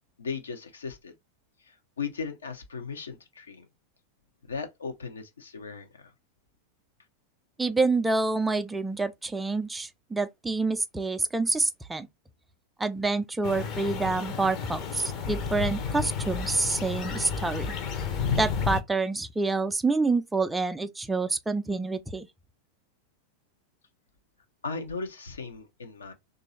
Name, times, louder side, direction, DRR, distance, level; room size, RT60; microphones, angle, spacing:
voice 1, 0.2-1.1 1.6-3.7 4.4-6.1 24.6-26.1, left 5 dB, 70° left, 0.7 m, -37 dB
voice 2, 7.6-12.1 12.8-17.7 18.4-22.3, right 3 dB, 10° right, 0.4 m, -27 dB
sound 1, 13.4-18.8, left 6 dB, 35° left, 0.7 m, -31 dB
3.0 x 2.5 x 4.0 m
figure-of-eight pair, 90°, 0 cm